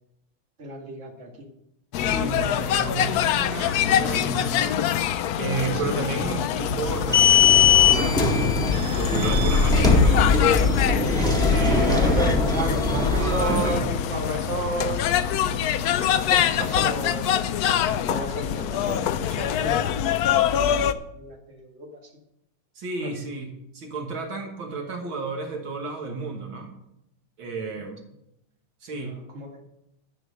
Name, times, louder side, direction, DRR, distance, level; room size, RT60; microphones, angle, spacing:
voice 1, 0.6-1.3 5.7-6.0 6.6-6.9 11.1-11.3 11.6-15.0 15.6-17.5 18.1-20.2 20.5-21.9 23.0-23.1 28.9-29.6, right 2 dB, 35° right, 0 dB, 2.2 m, -33 dB
sound 1, 1.9-20.9, left 9 dB, 80° left, 0.8 m, -25 dB
voice 2, 2.1-4.8 5.4-8.5 8.9-12.1 13.2-13.9 22.8-26.7 27.4-28.0 28.8-29.1, right 3 dB, 70° right, 1 dB, 2.4 m, -32 dB
sound 2, 6.9-13.8, left 5 dB, ahead, 1.5 m, -20 dB
11.5 x 7.7 x 6.3 m, 0.81 s
omnidirectional pair, 2.3 m